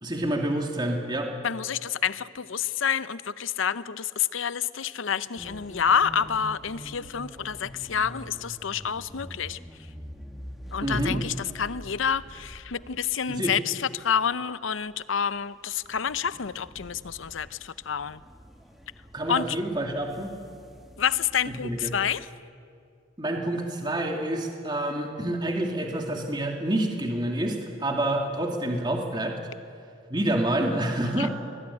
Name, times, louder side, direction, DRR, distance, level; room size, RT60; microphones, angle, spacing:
voice 1, 0.0-1.3 10.8-11.2 13.3-13.6 19.1-20.3 21.6-21.9 23.2-29.4 30.1-31.3, right 1 dB, 20° right, 2 dB, 2.4 m, -28 dB
voice 2, 1.4-9.6 10.7-18.2 19.3-19.6 21.0-22.3 31.2-31.3, left 7 dB, 85° left, 16 dB, 0.7 m, -28 dB
sound 1, 5.4-13.6 14.0-14.2 14.8-15.4 15.7-22.2, equal, ahead, 2.0 m, -45 dB
23.0 x 19.5 x 9.8 m, 2.3 s
head